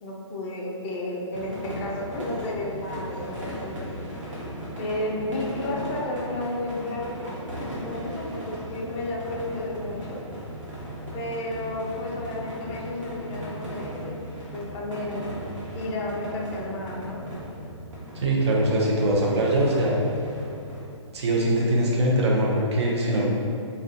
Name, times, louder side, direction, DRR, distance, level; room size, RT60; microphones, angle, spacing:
voice 1, 0.0-4.0 4.8-10.2 11.1-14.2 14.5-15.2 15.7-17.3, left 1 dB, 20° left, -4 dB, 0.3 m, -32 dB
sound 1, 1.3-20.8, equal, 80° right, 1.0 m, -37 dB
voice 2, 18.1-20.0 21.1-23.3, right 1 dB, 60° right, -2 dB, 0.6 m, -22 dB
2.3 x 2.2 x 2.6 m, 2.4 s
hypercardioid pair, 140°, 16 cm